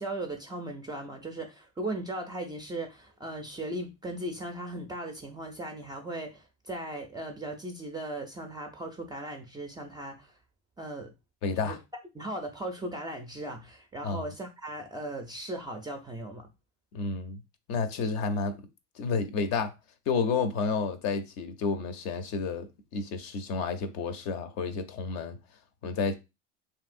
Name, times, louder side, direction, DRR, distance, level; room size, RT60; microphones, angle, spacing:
voice 1, 0.0-10.3 10.8-11.1 11.5-11.8 12.1-16.5, right 1 dB, 10° right, 0.4 m, -37 dB
voice 2, 11.4-11.8 14.0-14.3 16.9-17.4 17.7-18.6 19.0-19.7 20.1-25.4 25.8-26.2, left 4 dB, 50° left, 0.5 m, -30 dB
2.9 x 2.7 x 2.5 m
supercardioid pair, 110°, 35 cm